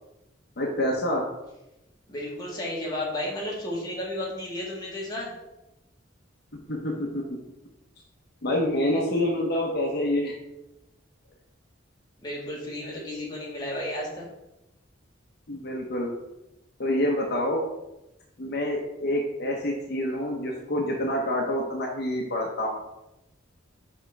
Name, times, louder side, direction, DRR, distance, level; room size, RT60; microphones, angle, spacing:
voice 1, 0.6-1.3 6.7-7.2 8.4-10.3 15.5-16.1 16.8-17.6 18.4-22.8, left 1 dB, 55° left, -1 dB, 0.9 m, -27 dB
voice 2, 2.1-5.3 12.2-14.2, left 1 dB, 20° left, -5 dB, 1.7 m, -33 dB
6.3 x 4.9 x 3.4 m, 0.94 s
head